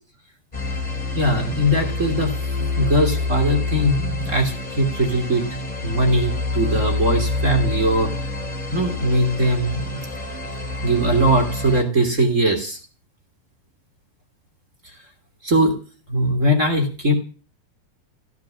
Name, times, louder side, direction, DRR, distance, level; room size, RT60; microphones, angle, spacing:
sound 1, 0.5-11.8, left 3 dB, 15° left, 2.9 m, -27 dB
voice 1, 1.1-2.3 2.8-5.4 5.8-8.1 8.7-10.0 10.8-12.8 15.4-15.7 16.1-17.1, right 1 dB, 25° right, 2 dB, 3.1 m, -20 dB
16.0 x 7.7 x 9.8 m, 0.37 s
omnidirectional pair, 3.4 m